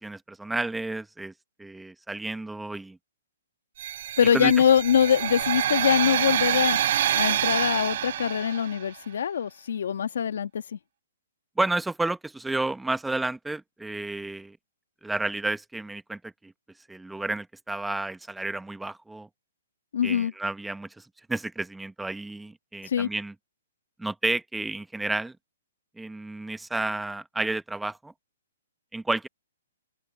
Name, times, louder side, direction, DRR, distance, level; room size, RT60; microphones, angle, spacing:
voice 1, 0.0-1.3 1.6-3.0 4.3-4.5 11.6-14.6 15.0-16.5 16.9-19.3 20.0-21.0 21.3-23.3 24.0-25.3 26.0-28.1 28.9-29.3, right 2 dB, 5° right, 1.1 m, -31 dB
sound 1, 3.8-8.8, right 11 dB, 55° right, 5.7 m, -27 dB
voice 2, 4.2-6.8 7.1-10.8 19.9-20.3 22.8-23.1, left 8 dB, 70° left, 1.6 m, -23 dB
open air
hypercardioid pair, 140°, 0 cm